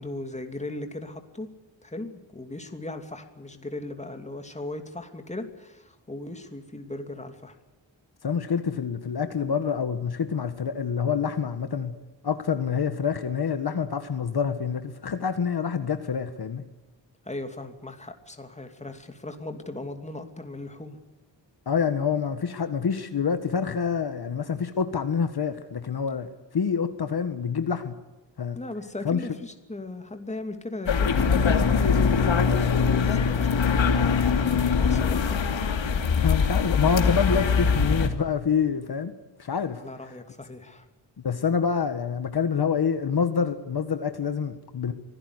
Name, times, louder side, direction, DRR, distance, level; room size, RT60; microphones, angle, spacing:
voice 1, 0.0-1.5 1.8-7.5 17.2-21.0 28.5-35.4 39.7-40.9, left 2 dB, 15° left, 6 dB, 2.7 m, -38 dB
voice 2, 8.2-11.9 12.2-16.6 21.7-27.9 28.4-28.6 29.0-29.2 36.2-39.1 39.4-39.8 41.2-44.9, left 6 dB, 55° left, 9 dB, 1.6 m, -27 dB
sound 1, 30.9-38.1, left 5 dB, 85° left, 2.8 m, -22 dB
25.0 x 17.0 x 9.7 m, 1.1 s
wide cardioid pair, 150°, 45 cm